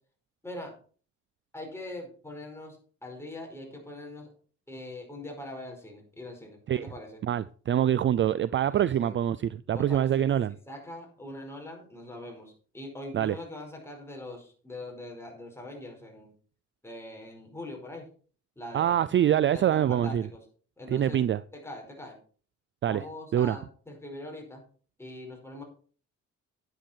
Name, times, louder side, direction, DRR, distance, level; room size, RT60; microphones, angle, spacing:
voice 1, 0.4-0.7 1.5-4.3 4.7-7.2 9.0-9.2 9.7-10.2 10.7-16.3 16.8-18.1 18.6-19.1 19.5-20.4 20.8-21.2 21.5-22.2 22.8-24.6 25.0-25.6, left 1 dB, 10° left, 4.9 m, -42 dB
voice 2, 7.2-10.6 13.1-13.4 18.7-20.3 20.9-21.4 22.8-23.0 23.3-23.6, right 10 dB, 40° right, 0.4 m, -25 dB
10.5 x 9.0 x 4.5 m
cardioid pair, 90°, 30 cm